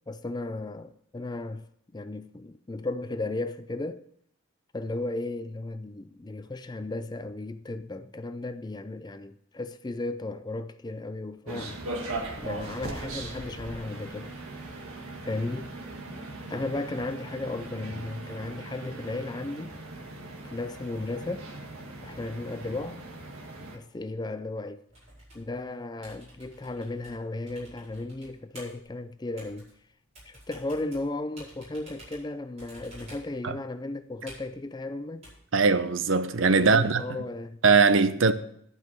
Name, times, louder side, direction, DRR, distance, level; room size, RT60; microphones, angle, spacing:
voice 1, 0.1-1.7 1.9-4.1 4.7-11.8 12.4-14.3 15.2-15.8 16.1-19.8 20.5-21.5 22.0-23.0 23.7-24.9 25.3-29.7 30.3-35.3 36.6-37.6, left 2 dB, 20° left, 0.4 m, -35 dB
sound 1, 11.5-23.8, right 2 dB, 80° right, 1.7 m, -39 dB
sound 2, 24.9-37.0, right 1 dB, 30° right, 5.1 m, -51 dB
voice 2, 35.5-37.0 37.6-38.3, right 4 dB, 60° right, 0.7 m, -21 dB
10.5 x 5.6 x 8.1 m
head